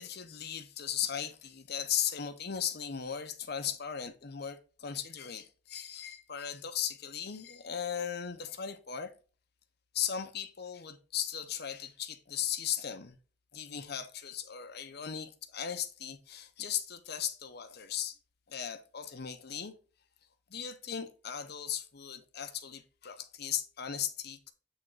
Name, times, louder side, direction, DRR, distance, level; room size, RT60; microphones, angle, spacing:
voice 1, 0.0-9.1 9.9-13.2 13.5-18.2 18.5-19.7 20.5-24.5, left 9 dB, 55° left, 0.8 m, -37 dB
7.8 x 3.6 x 3.8 m
head